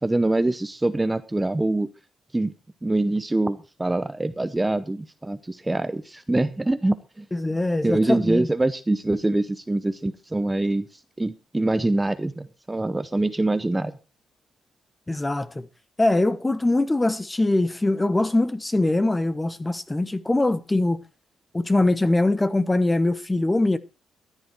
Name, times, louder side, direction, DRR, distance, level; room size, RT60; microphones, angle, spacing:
voice 1, 0.0-1.9 2.3-2.5 2.8-7.3 7.8-10.9 11.2-13.9, right 2 dB, 15° right, 0.8 m, -24 dB
voice 2, 7.3-8.5 15.1-15.7 16.0-21.0 21.5-23.8, left 2 dB, 15° left, 1.1 m, -22 dB
14.0 x 11.0 x 4.6 m
cardioid pair, 100°, 0 cm